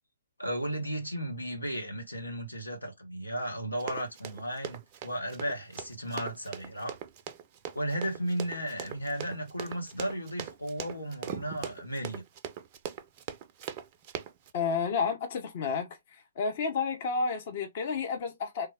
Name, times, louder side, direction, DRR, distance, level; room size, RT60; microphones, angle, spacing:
voice 1, 0.4-7.0 7.7-12.2, right 1 dB, 85° left, 1.1 m, -35 dB
Run, 3.8-14.5, right 9 dB, 30° right, 0.4 m, -40 dB
voice 2, 14.5-15.9 16.4-18.7, left 5 dB, 40° left, 0.8 m, -30 dB
3.4 x 2.2 x 3.4 m
figure-of-eight pair, 125°, 0 cm